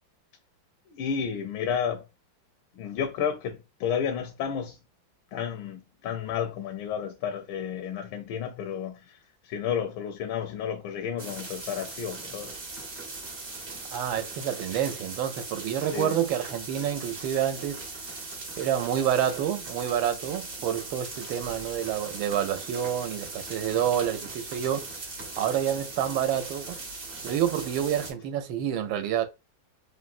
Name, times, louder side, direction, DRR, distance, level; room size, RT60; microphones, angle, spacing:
voice 1, 0.9-2.0 2.7-4.8 5.3-12.5 15.7-16.2, left 8 dB, 85° left, 1.4 m, -32 dB
sound 1, 11.2-28.1, right 3 dB, 45° right, 0.8 m, -39 dB
voice 2, 13.9-17.8 18.6-24.9 25.4-26.8 27.2-29.3, right 10 dB, 80° right, 1.4 m, -28 dB
3.8 x 2.1 x 2.4 m
omnidirectional pair, 2.2 m